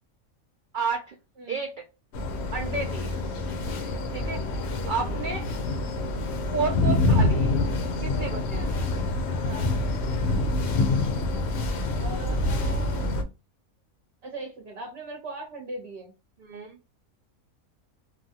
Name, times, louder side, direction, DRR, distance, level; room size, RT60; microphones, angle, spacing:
voice 1, 0.7-1.1 1.5-1.9 2.5-3.2 4.1-4.4 4.9-5.5 6.5-7.5 8.0-8.9 16.4-16.8, right 4 dB, 80° right, 4 dB, 0.4 m, -31 dB
sound 1, 2.1-13.2, left 2 dB, 60° left, 0.8 m, -26 dB
voice 2, 4.8-5.1 9.4-9.7 12.0-13.1 14.2-16.1, right 2 dB, 55° right, 1 dB, 0.9 m, -39 dB
3.2 x 2.2 x 2.7 m, 0.28 s
omnidirectional pair, 1.5 m